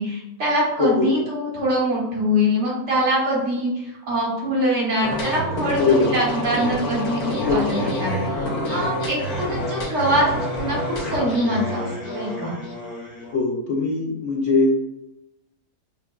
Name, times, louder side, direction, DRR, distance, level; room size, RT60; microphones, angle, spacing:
voice 1, 0.0-10.8 11.1-12.6, equal, 55° right, -4 dB, 1.2 m, -24 dB
voice 2, 0.8-1.1 5.8-6.1 7.4-8.0 13.3-14.7, left 3 dB, 65° left, -1 dB, 0.9 m, -21 dB
sound 1, 5.0-13.3, left 1 dB, 85° left, 1.2 m, -28 dB
5.6 x 2.1 x 2.2 m, 0.89 s
omnidirectional pair, 1.6 m